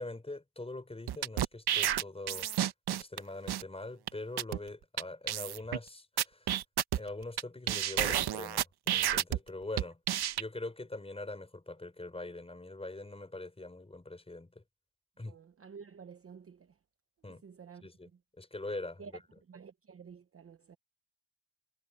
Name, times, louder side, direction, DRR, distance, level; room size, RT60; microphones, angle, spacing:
voice 1, 0.0-6.5 6.9-10.0 10.4-14.6 15.2-15.4 17.2-17.4 17.8-18.1 18.4-19.4, left 2 dB, 10° left, 5.7 m, -43 dB
sound 1, 1.1-3.2 3.5-3.6 4.1-4.2 4.4-4.6 5.0-5.1 5.3-5.8 6.2-7.4 7.7-9.4 9.8-10.4, right 11 dB, 55° right, 1.1 m, -30 dB
voice 2, 15.3-16.6 17.4-17.8 19.0-19.1 19.5-20.8, right 6 dB, 30° right, 0.9 m, -50 dB
cardioid pair, 120°, 46 cm